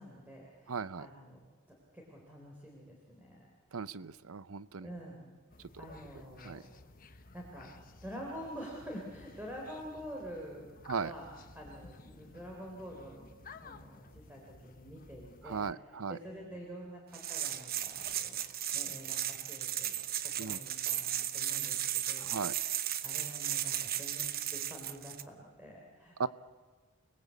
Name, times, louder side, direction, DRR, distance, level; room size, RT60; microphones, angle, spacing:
voice 1, 0.0-1.4 1.9-3.9 4.8-5.2 5.8-6.7 7.3-7.7 8.0-10.7 11.0-11.3 11.5-19.9 20.2-22.6 23.0-24.3 24.5-26.3, equal, 10° right, -2 dB, 3.7 m, -47 dB
voice 2, 0.7-1.1 3.7-4.9 6.4-6.6 10.9-11.1 15.4-16.2 20.4-20.6 22.2-22.6 26.2-26.3, right 5 dB, 75° right, 17 dB, 0.7 m, -37 dB
sound 1, 5.5-15.7, left 3 dB, 40° left, 1.2 m, -55 dB
sound 2, 17.1-25.2, right 11 dB, 45° right, 0.9 m, -35 dB
29.5 x 19.5 x 8.4 m, 1.4 s
head